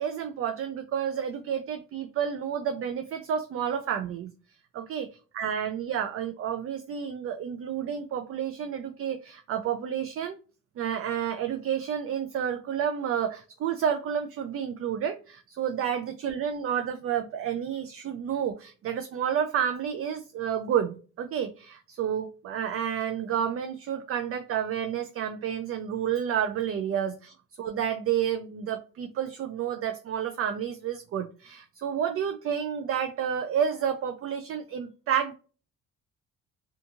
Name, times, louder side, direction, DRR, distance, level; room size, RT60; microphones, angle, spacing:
voice 1, 0.0-4.3 4.7-5.1 5.3-10.4 10.8-35.3, right 8 dB, 50° right, 0.4 m, -30 dB
2.7 x 2.4 x 2.5 m
cardioid pair, 90°, 30 cm